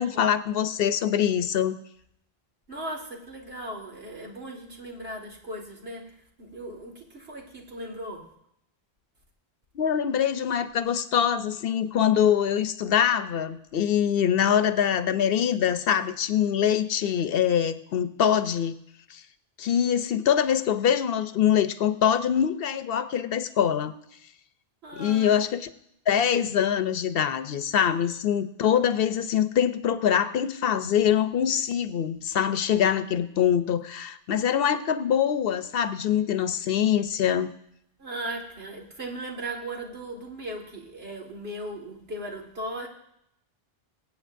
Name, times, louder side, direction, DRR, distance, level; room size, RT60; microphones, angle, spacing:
voice 1, 0.0-1.8 9.7-18.8 19.1-19.2 19.6-23.9 24.9-25.7 26.1-37.5, left 9 dB, 70° left, 12 dB, 0.8 m, -24 dB
voice 2, 2.7-8.3 24.8-25.4 38.0-42.9, right 1 dB, 80° right, 0 dB, 2.2 m, -37 dB
23.0 x 8.5 x 2.6 m, 0.76 s
omnidirectional pair, 1.0 m